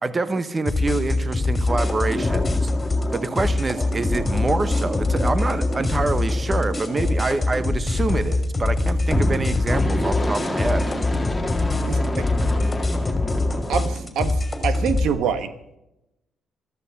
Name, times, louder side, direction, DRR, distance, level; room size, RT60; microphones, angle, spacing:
voice 1, 0.0-2.7 3.1-10.8, right 3 dB, 25° right, 13 dB, 1.0 m, -26 dB
sound 1, 0.6-15.1, left 2 dB, 25° left, 3.2 m, -24 dB
sound 2, 1.7-8.0 9.0-14.0, left 1 dB, 5° left, 2.1 m, -29 dB
voice 2, 13.7-15.5, right 7 dB, 80° right, 11 dB, 1.2 m, -25 dB
14.0 x 13.5 x 5.8 m, 0.87 s
cardioid pair, 90°, 0 cm